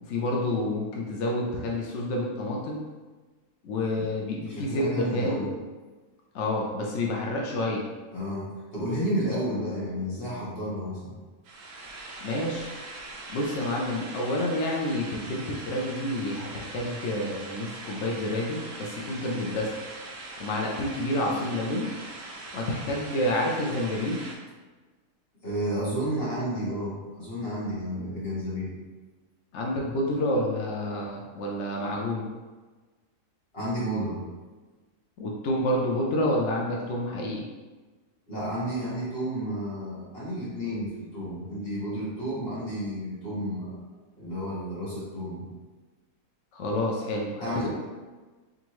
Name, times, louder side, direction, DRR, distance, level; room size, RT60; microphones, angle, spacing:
voice 1, 0.0-2.8 3.6-5.4 6.3-7.8 12.2-12.7 13.3-19.7 20.4-21.9 22.5-24.2 29.5-32.3 35.2-37.4 46.5-47.7, left 1 dB, 65° left, -1 dB, 0.7 m, -29 dB
voice 2, 4.4-5.5 8.1-11.1 25.4-28.7 33.5-34.2 38.3-43.8 44.2-45.5 47.4-47.7, equal, 40° left, -8 dB, 1.6 m, -31 dB
sound 1, 11.4-24.3, right 2 dB, 65° right, 1.0 m, -41 dB
3.7 x 3.6 x 3.0 m, 1.3 s
omnidirectional pair, 1.6 m